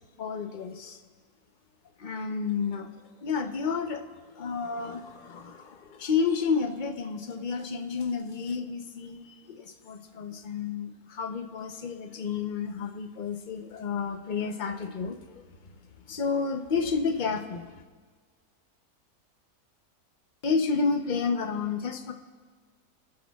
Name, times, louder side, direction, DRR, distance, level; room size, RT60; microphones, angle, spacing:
voice 1, 0.2-1.0 2.0-2.9 3.2-15.4 16.1-17.8 20.4-22.1, left 5 dB, 45° left, 5 dB, 0.7 m, -31 dB
26.0 x 10.5 x 2.3 m, 1.5 s
omnidirectional pair, 1.6 m